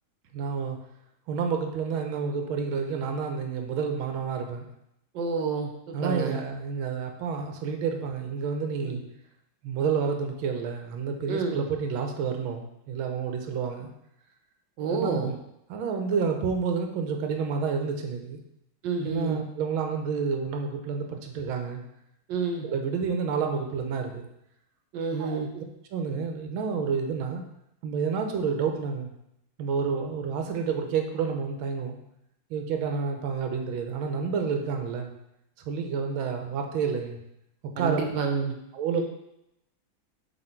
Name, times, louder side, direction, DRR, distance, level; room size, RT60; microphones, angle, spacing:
voice 1, 0.3-0.8 1.3-4.7 5.9-9.0 9.6-13.9 14.8-15.3 15.7-18.4 19.0-21.8 22.6-24.2 25.2-25.6 25.9-27.4 27.8-29.1 29.6-32.0 32.5-35.1 35.7-37.2 37.6-38.0 38.7-39.0, right 6 dB, 90° right, 4 dB, 1.6 m, -29 dB
voice 2, 5.1-6.4 8.8-9.0 11.3-11.6 14.8-15.3 18.8-19.4 22.3-22.7 24.9-25.5 37.8-38.6 38.9-39.0, right 5 dB, 70° right, 4 dB, 1.4 m, -29 dB
6.7 x 3.5 x 4.4 m, 0.81 s
omnidirectional pair, 2.2 m